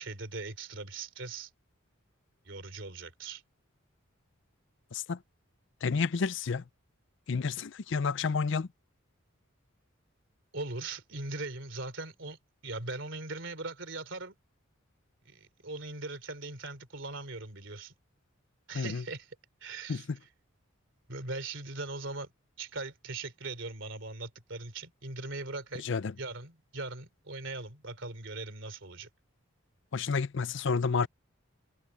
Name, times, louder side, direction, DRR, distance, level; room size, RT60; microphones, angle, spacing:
voice 1, 0.0-1.5 2.4-3.4 10.5-12.4 12.6-14.3 15.2-17.9 18.7-19.3 19.6-20.1 21.1-22.3 22.6-25.8 26.2-29.1, right 3 dB, 60° right, 3.3 m, -40 dB
voice 2, 5.8-6.6 7.3-8.7 18.7-19.0 19.9-20.2 25.8-26.1 29.9-31.1, left 5 dB, 60° left, 0.5 m, -30 dB
head